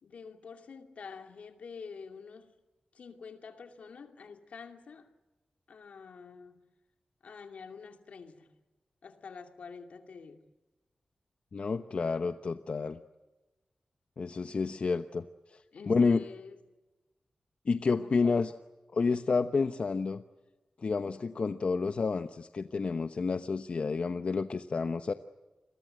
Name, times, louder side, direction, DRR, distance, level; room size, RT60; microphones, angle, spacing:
voice 1, 0.0-2.5 2.9-5.1 5.7-6.6 7.2-8.5 9.0-10.4 15.7-16.6 18.0-18.4, left 5 dB, 90° left, 2.4 m, -47 dB
voice 2, 11.5-13.0 14.2-15.2 15.9-16.2 17.7-18.5 18.9-20.2 20.8-25.1, left 4 dB, 60° left, 0.9 m, -29 dB
29.0 x 22.5 x 7.7 m
cardioid pair, 70°, 2 cm